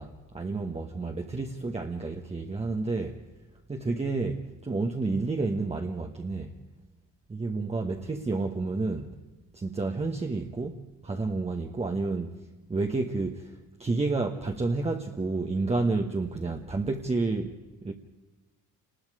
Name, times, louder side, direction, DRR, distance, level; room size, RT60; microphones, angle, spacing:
voice 1, 0.0-3.2 3.7-6.5 7.3-9.2 9.5-12.3 12.7-17.9, right 3 dB, 20° right, 1.2 m, -30 dB
28.5 x 20.0 x 4.9 m
cardioid pair, 115°, 34 cm